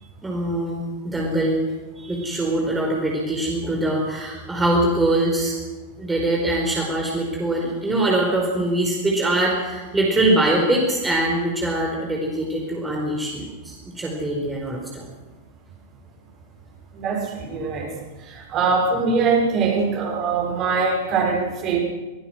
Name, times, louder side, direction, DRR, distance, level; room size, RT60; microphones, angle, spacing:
voice 1, 0.2-1.6 2.0-5.6 6.0-15.0, right 1 dB, 10° right, -1 dB, 4.5 m, -23 dB
voice 2, 16.9-17.9 18.2-21.8, right 4 dB, 35° right, 0 dB, 6.1 m, -22 dB
25.5 x 18.5 x 6.3 m, 1.2 s
figure-of-eight pair, 90°, 0 cm